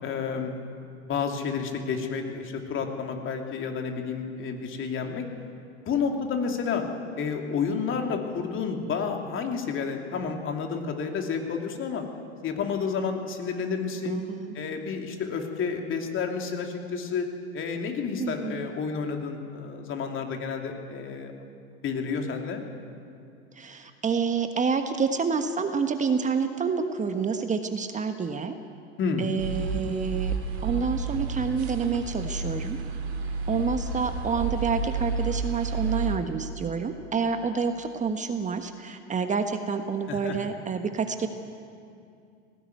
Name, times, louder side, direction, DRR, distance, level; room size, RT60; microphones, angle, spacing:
voice 1, 0.0-0.5 1.1-5.3 5.7-6.8 7.2-12.0 12.4-14.2 14.5-17.3 17.5-21.3 21.8-22.6 29.0-29.3 40.1-40.4, left 5 dB, 40° left, 3 dB, 2.9 m, -30 dB
voice 2, 14.0-14.5 18.2-18.5 23.6-28.6 29.2-30.3 30.6-32.8 33.5-41.3, right 5 dB, 20° right, 7 dB, 1.3 m, -28 dB
sound 1, 29.4-36.2, right 4 dB, 75° right, 2.7 m, -31 dB
18.5 x 17.0 x 9.4 m, 2.5 s
hypercardioid pair, 90°, 33 cm